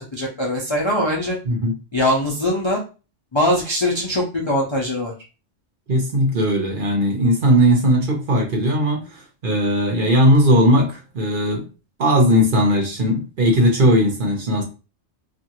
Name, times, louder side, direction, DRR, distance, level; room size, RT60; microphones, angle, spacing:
voice 1, 0.0-1.4 1.9-2.8 3.3-5.1, left 1 dB, 40° left, 0.4 m, -21 dB
voice 2, 5.9-11.6 12.0-14.6, equal, 50° right, 0.8 m, -18 dB
2.7 x 2.5 x 2.9 m
omnidirectional pair, 1.3 m